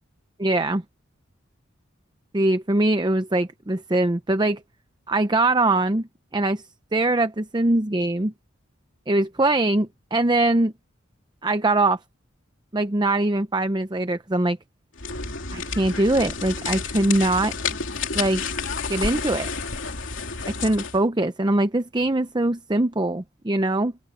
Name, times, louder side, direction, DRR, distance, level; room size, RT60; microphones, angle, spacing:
voice 1, 0.4-0.8 2.3-4.6 5.1-6.1 6.3-6.6 6.9-8.3 9.1-10.7 11.4-12.0 12.7-14.6 15.5-17.6 18.1-18.4 18.9-19.5 20.6-23.9, right 2 dB, 20° right, 0.7 m, -22 dB
sound 1, 15.0-21.0, left 5 dB, 65° left, 3.4 m, -30 dB
open air
head